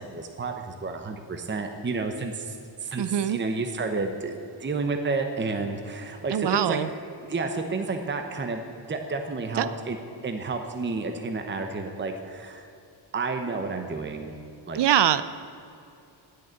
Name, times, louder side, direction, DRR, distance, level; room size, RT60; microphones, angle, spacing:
voice 1, 0.0-6.8 7.2-8.6 8.9-10.0 10.2-12.7 13.1-14.3 14.7-14.8, right 3 dB, 25° right, 5 dB, 1.0 m, -31 dB
voice 2, 3.0-3.4 6.3-6.9 9.6-9.7 14.7-15.2, right 10 dB, 60° right, 14 dB, 0.7 m, -23 dB
17.5 x 6.7 x 9.1 m, 2.7 s
wide cardioid pair, 155°, 46 cm